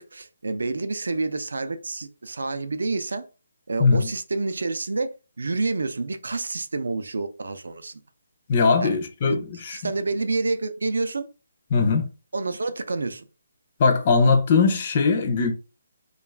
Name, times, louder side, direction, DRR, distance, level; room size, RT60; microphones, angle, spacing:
voice 1, 0.0-3.3 3.7-8.0 8.8-9.0 9.7-11.3 12.3-13.3, right 3 dB, 80° right, 0.4 m, -28 dB
voice 2, 8.5-9.8 11.7-12.1 13.8-15.5, left 4 dB, 25° left, 0.4 m, -20 dB
2.3 x 2.3 x 3.2 m
hypercardioid pair, 180°, 0 cm